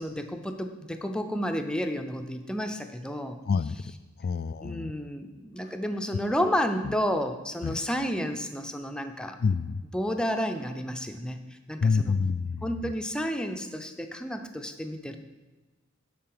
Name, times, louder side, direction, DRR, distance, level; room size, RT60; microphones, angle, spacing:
voice 1, 0.0-3.4 4.6-9.4 9.9-11.4 11.7-12.2 12.6-15.2, equal, 5° left, 6 dB, 0.6 m, -31 dB
voice 2, 3.5-3.8 4.2-4.9 6.8-6.9 7.6-7.8 9.4-9.8 11.8-12.9, left 5 dB, 50° left, 14 dB, 0.3 m, -27 dB
10.5 x 4.4 x 7.6 m, 1.2 s
head